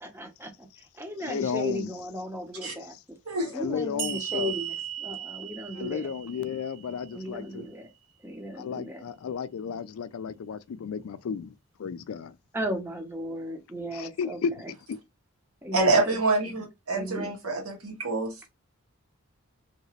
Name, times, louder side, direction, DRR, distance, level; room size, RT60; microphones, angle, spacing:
voice 1, 0.0-3.0 3.5-6.1 7.1-7.9 8.2-9.1 12.5-14.4 15.6-16.2 16.9-17.3, equal, 10° right, 0.7 m, -36 dB
voice 2, 1.2-1.9 3.5-4.5 5.7-7.7 8.6-11.5 11.8-12.4 13.9-14.5 14.9-15.0, left 6 dB, 70° left, 0.4 m, -33 dB
voice 3, 3.3-3.6 15.7-18.5, right 3 dB, 80° right, 1.5 m, -26 dB
sound 1, 4.0-7.4, right 10 dB, 55° right, 0.5 m, -36 dB
2.9 x 2.8 x 2.8 m
head